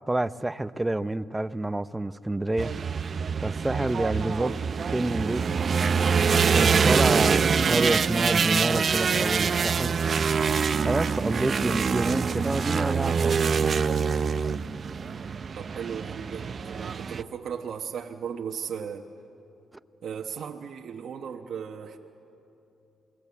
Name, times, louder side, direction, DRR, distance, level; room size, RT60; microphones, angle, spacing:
voice 1, 0.1-2.7 3.4-4.5 4.9-5.4 6.5-10.0 10.8-13.4, right 1 dB, 15° right, 14 dB, 0.6 m, -28 dB
sound 1, 2.6-17.2, right 6 dB, 50° right, 0.6 m, -25 dB
voice 2, 15.5-19.1 20.0-22.0, right 7 dB, 70° right, 2 dB, 1.1 m, -36 dB
28.0 x 19.5 x 8.4 m, 2.8 s
cardioid pair, 75°, 0 cm